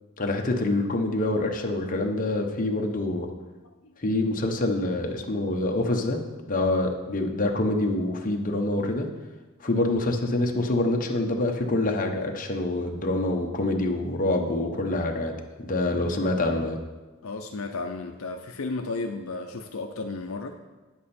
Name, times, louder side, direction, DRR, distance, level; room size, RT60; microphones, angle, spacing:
voice 1, 0.2-3.3 4.0-9.1 9.6-16.8, left 2 dB, 40° left, 2 dB, 0.9 m, -26 dB
voice 2, 17.2-20.5, left 3 dB, 75° left, 4 dB, 0.6 m, -33 dB
9.6 x 7.3 x 4.3 m, 1.2 s
head